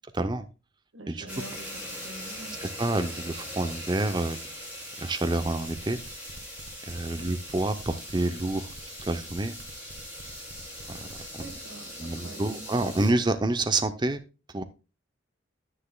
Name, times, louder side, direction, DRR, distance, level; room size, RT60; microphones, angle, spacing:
voice 1, 0.1-0.5 1.1-1.3 2.6-4.4 5.0-6.0 6.9-8.7 9.0-9.5 11.0-11.4 12.0-14.2 14.5-14.6, right 2 dB, 25° right, 9 dB, 0.6 m, -28 dB
voice 2, 0.9-2.6 7.2-7.3 11.4-13.0, right 1 dB, 90° right, 7 dB, 1.6 m, -45 dB
sound 1, 1.3-13.1, equal, 5° right, 3.5 m, -41 dB
sound 2, 5.4-11.5, right 1 dB, 65° right, 2.2 m, -47 dB
9.9 x 9.8 x 2.3 m, 0.30 s
head